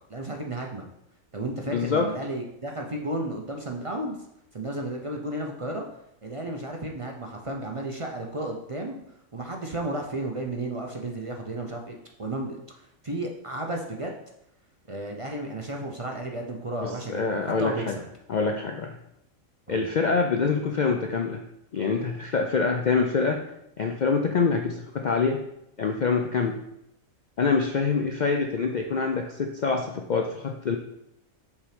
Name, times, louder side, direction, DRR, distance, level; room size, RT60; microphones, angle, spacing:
voice 1, 0.1-0.8 1.3-4.2 4.5-5.8 6.2-9.0 9.3-12.6 13.0-14.1 14.9-18.0 19.7-19.9, right 1 dB, 35° right, 1 dB, 0.5 m, -33 dB
voice 2, 1.7-2.1 16.8-18.0 18.3-19.0 19.7-21.4 21.7-23.5 23.8-25.4 25.8-26.6 27.4-30.8, left 4 dB, 85° left, 4 dB, 0.4 m, -25 dB
5.6 x 4.4 x 5.1 m, 0.80 s
omnidirectional pair, 1.4 m